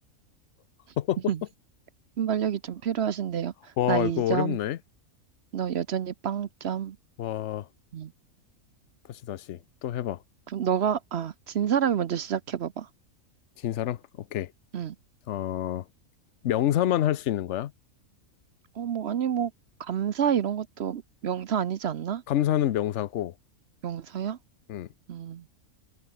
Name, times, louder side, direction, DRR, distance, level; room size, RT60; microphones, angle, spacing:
voice 1, 2.2-4.6 5.5-7.0 7.9-8.1 10.5-12.9 14.7-14.9 18.7-19.5 19.8-22.2 23.8-24.4 25.1-25.4, right 8 dB, 55° right, 0.9 m, -28 dB
voice 2, 3.8-4.8 7.2-7.7 9.1-10.2 13.6-14.5 15.3-15.9 16.4-17.7 22.3-23.3 24.7-24.9, left 12 dB, 60° left, 1.0 m, -27 dB
omnidirectional pair, 1.5 m